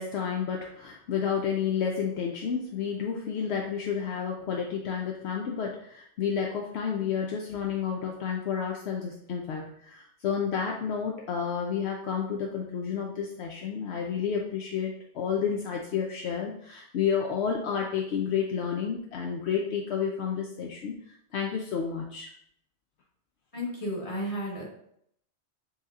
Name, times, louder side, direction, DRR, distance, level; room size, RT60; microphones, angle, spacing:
voice 1, 0.0-22.3, left 7 dB, 70° left, 0 dB, 0.8 m, -30 dB
voice 2, 23.5-24.6, equal, 30° left, -4 dB, 1.4 m, -33 dB
7.5 x 2.8 x 2.4 m, 0.69 s
omnidirectional pair, 1.2 m